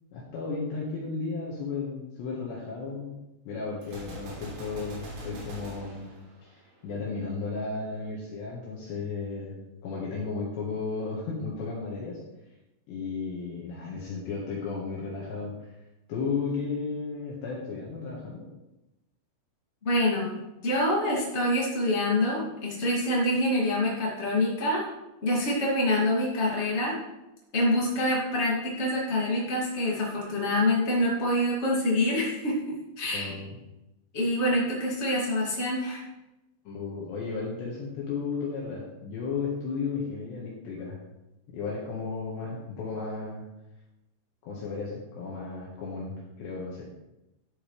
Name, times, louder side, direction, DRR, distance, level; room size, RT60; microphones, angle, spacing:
voice 1, 0.1-3.1 3.4-6.1 6.4-9.5 9.8-12.2 12.9-15.5 16.1-18.5 33.1-33.6 36.6-41.0 41.5-43.4 44.4-46.8, left 4 dB, 65° left, -4 dB, 3.4 m, -34 dB
Gunshot gunfire, 3.8-6.9, equal, 80° right, 6.1 m, -42 dB
voice 2, 19.8-24.9 25.2-27.0 27.5-33.3 34.1-36.0, left 1 dB, 30° left, -4 dB, 1.2 m, -26 dB
12.0 x 8.5 x 3.4 m, 0.96 s
omnidirectional pair, 5.9 m